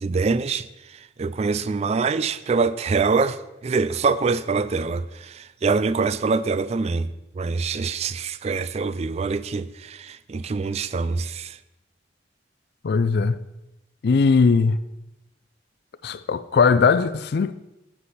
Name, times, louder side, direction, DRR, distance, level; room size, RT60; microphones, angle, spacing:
voice 1, 0.0-0.7 1.2-3.4 3.6-7.1 7.4-11.6, right 4 dB, 35° right, 0.3 m, -24 dB
voice 2, 12.8-13.4 14.0-14.8 16.0-17.5, left 5 dB, 60° left, 0.4 m, -19 dB
9.7 x 8.3 x 4.2 m
head